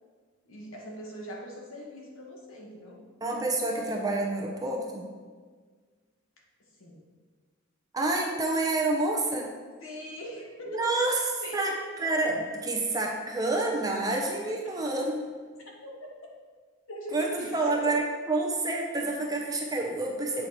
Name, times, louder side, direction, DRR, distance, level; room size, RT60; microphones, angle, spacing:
voice 1, 0.5-3.1 6.6-7.0 9.8-11.8 15.8-16.1 16.9-17.9, equal, 80° left, -1 dB, 1.4 m, -41 dB
voice 2, 3.2-5.1 7.9-9.5 10.7-11.2 11.5-11.7 12.0-15.2 17.1-20.5, right 2 dB, 15° right, -1 dB, 0.7 m, -28 dB
8.1 x 4.7 x 4.2 m, 1.6 s
head